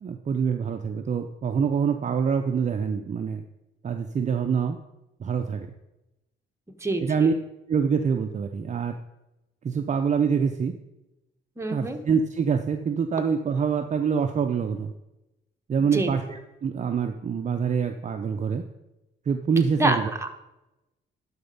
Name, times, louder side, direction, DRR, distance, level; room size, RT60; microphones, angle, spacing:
voice 1, 0.0-3.4 3.8-4.8 5.2-5.7 7.0-7.3 7.7-9.0 9.6-10.7 11.7-14.9 15.7-18.6 19.3-20.1, right 6 dB, 35° right, 6 dB, 0.6 m, -25 dB
voice 2, 6.8-7.3 11.6-12.0 15.9-16.1 19.8-20.3, right 1 dB, 15° right, 4 dB, 1.1 m, -26 dB
11.5 x 4.3 x 5.3 m, 0.95 s
cardioid pair, 90°, 20 cm